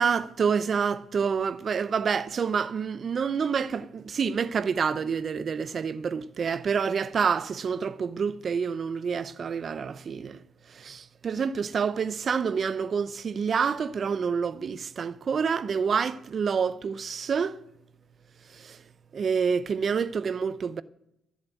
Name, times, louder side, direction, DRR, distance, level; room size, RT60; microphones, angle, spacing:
voice 1, 0.0-10.4 10.8-17.6 18.6-18.8 19.1-20.8, right 6 dB, 50° right, 0.6 m, -28 dB
13.0 x 7.2 x 9.1 m
cardioid pair, 90°, 0 cm